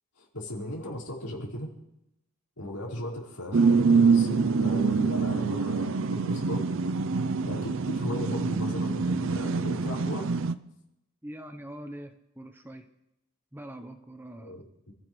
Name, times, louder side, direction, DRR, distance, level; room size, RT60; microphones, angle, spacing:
voice 1, 0.2-1.7 2.6-6.7 7.4-10.3 14.4-14.9, left 1 dB, 85° left, -5 dB, 4.8 m, -36 dB
sound 1, 3.5-10.5, right 4 dB, 60° right, 0.5 m, -25 dB
voice 2, 11.2-12.9 13.5-14.6, right 1 dB, 10° right, 7 dB, 0.8 m, -43 dB
28.0 x 15.5 x 3.2 m, 0.88 s
head